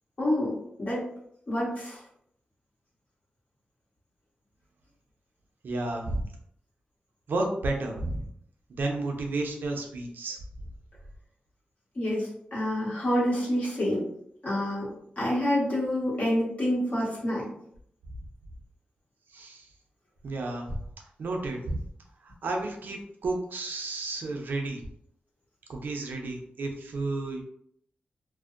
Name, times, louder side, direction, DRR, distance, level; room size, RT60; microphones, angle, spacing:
voice 1, 0.2-1.1 1.5-2.0 11.9-14.1 14.4-14.9 15.2-17.4, left 1 dB, 50° left, -6 dB, 1.3 m, -27 dB
voice 2, 5.6-6.2 7.3-8.3 8.7-10.4 19.3-19.7 20.2-20.8 21.2-21.8 22.2-24.8 25.7-27.4, right 2 dB, 75° right, 2 dB, 0.5 m, -32 dB
2.5 x 2.0 x 2.4 m, 0.71 s
cardioid pair, 65°, 3 cm